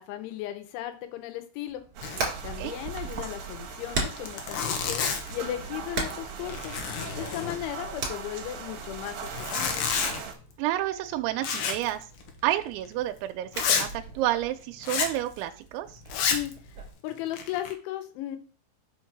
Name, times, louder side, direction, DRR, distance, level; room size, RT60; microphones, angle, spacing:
voice 1, 0.0-1.8 2.4-6.8 7.2-9.9 16.2-16.5 17.0-18.4, left 13 dB, 85° left, 8 dB, 3.4 m, -36 dB
Hammer, 1.7-16.9, right 3 dB, 40° right, 3.0 m, -40 dB
sound 1, 1.9-10.3, right 6 dB, 65° right, 2.6 m, -39 dB
Zipper (clothing), 2.0-2.4 2.7-2.8 3.1-3.2 3.8-3.9 4.2-5.4 5.9-6.2 6.5-7.9 9.2-10.2 11.4-11.9 12.2-12.3 12.9-13.0 13.5-13.9 14.8-15.2 16.1-16.5 17.1-17.7, left 6 dB, 70° left, 2.0 m, -29 dB
voice 2, 10.6-12.0 12.4-15.9, right 14 dB, 90° right, 6 dB, 3.0 m, -30 dB
6.5 x 4.6 x 5.9 m, 0.39 s
omnidirectional pair, 5.3 m